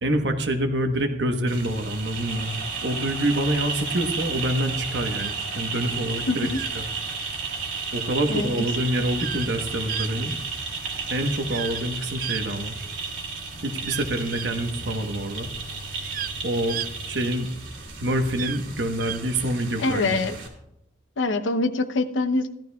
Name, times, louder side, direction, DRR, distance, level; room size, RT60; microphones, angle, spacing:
voice 1, 0.0-6.5 6.7-6.8 7.9-10.3 11.1-12.7 13.6-15.5 16.4-17.5 18.0-20.2, right 1 dB, 65° right, 6 dB, 1.2 m, -26 dB
sound 1, 1.5-20.5, right 4 dB, 85° right, 2.6 m, -33 dB
sound 2, 5.2-5.4 6.5-6.8 9.2-9.5 9.9-10.1 11.5-11.8 12.2-13.1 13.8-14.5 15.8-16.3 16.7-16.9 18.4-18.6 19.0-19.2, right 11 dB, 45° right, 0.3 m, -34 dB
voice 2, 6.3-6.6 8.3-8.6 19.8-20.4 21.2-22.5, left 2 dB, 90° left, 9 dB, 0.8 m, -24 dB
16.0 x 12.0 x 2.3 m, 0.80 s
head